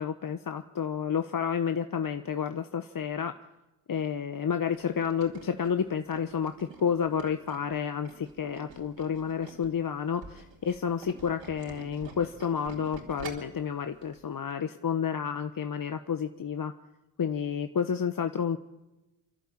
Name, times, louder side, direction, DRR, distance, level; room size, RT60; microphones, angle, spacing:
voice 1, 0.0-3.3 3.9-16.7 17.2-18.6, left 7 dB, 40° left, 8 dB, 1.2 m, -30 dB
Tools, 4.7-9.7 10.1-13.6 14.0-14.2 14.5-14.6, right 4 dB, 60° right, 5.0 m, -47 dB
30.0 x 12.0 x 8.9 m, 1.0 s
supercardioid pair, 60°, 49 cm